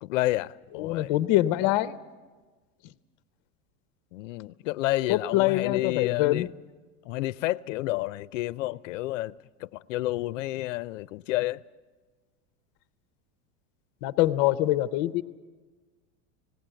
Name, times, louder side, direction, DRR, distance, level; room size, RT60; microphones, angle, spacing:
voice 1, 0.0-1.1 4.1-6.5 7.1-9.4 9.7-11.6, left 17 dB, 85° left, 0.5 m, -30 dB
voice 2, 0.7-2.0 5.1-6.5 14.0-15.2, left 15 dB, 40° left, 0.5 m, -24 dB
18.5 x 17.0 x 8.9 m
supercardioid pair, 175°, 37 cm